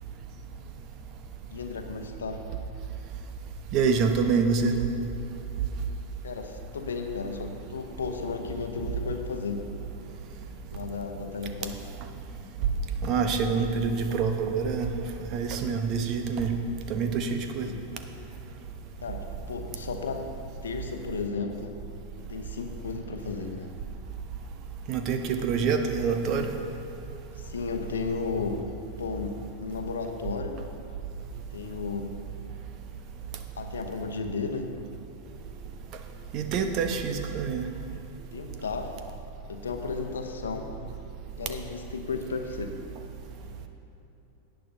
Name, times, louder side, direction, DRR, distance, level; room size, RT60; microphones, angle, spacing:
voice 1, 1.5-2.4 6.2-9.6 10.7-11.8 17.6-17.8 19.0-20.2 20.6-21.7 22.3-23.7 27.4-28.6 29.0-30.6 31.5-32.1 33.6-34.7 38.3-38.9 39.5-40.7 41.4-42.7, left 5 dB, 70° left, 5 dB, 0.9 m, -34 dB
voice 2, 3.7-4.8 13.0-14.9 15.3-16.5 16.9-17.7 24.9-26.5 36.3-37.7, right 5 dB, 40° right, 6 dB, 0.9 m, -26 dB
18.0 x 9.0 x 2.7 m, 3.0 s
figure-of-eight pair, 90°, 0 cm